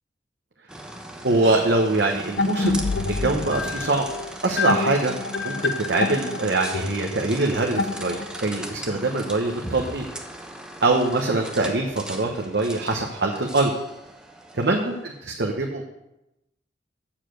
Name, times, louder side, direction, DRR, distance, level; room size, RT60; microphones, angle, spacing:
sound 1, 0.7-15.1, right 1 dB, 5° right, 1.0 m, -39 dB
voice 1, 1.2-4.1 4.4-5.1 5.4-10.0 10.8-13.7 14.5-15.8, right 2 dB, 65° right, 1 dB, 1.0 m, -23 dB
sound 2, 2.4-8.5, left 3 dB, 80° left, 0.6 m, -27 dB
7.3 x 6.7 x 7.7 m, 0.93 s
head